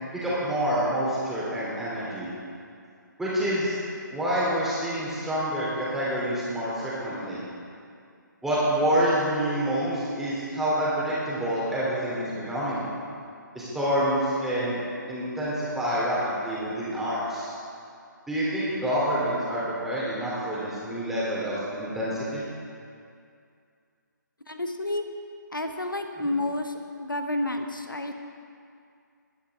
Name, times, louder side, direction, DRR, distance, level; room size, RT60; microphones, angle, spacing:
voice 1, 0.1-2.3 3.2-3.8 4.1-7.4 8.4-12.8 13.5-14.8 15.1-17.5 18.3-22.4, equal, 5° right, -9 dB, 3.3 m, -27 dB
voice 2, 24.5-25.0 25.5-26.7 27.0-28.1, left 1 dB, 90° left, 5 dB, 1.2 m, -30 dB
19.5 x 10.0 x 3.7 m, 2.3 s
figure-of-eight pair, 145°, 11 cm